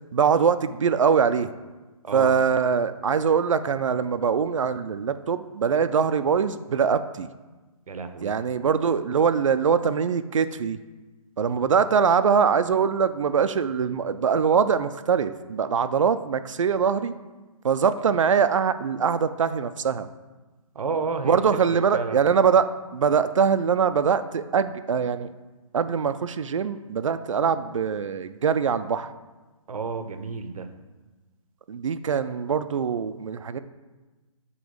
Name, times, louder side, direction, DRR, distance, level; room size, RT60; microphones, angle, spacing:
voice 1, 0.1-1.5 2.1-7.3 8.2-10.8 11.4-17.2 17.6-20.1 21.2-25.3 25.7-29.1 31.7-33.6, right 6 dB, 60° right, 12 dB, 0.4 m, -23 dB
voice 2, 2.0-2.3 7.9-8.3 11.4-11.6 20.7-21.4 21.7-22.2 29.7-30.7, right 4 dB, 85° right, 9 dB, 0.8 m, -31 dB
7.9 x 3.0 x 4.9 m, 1.2 s
hypercardioid pair, 175°, 18 cm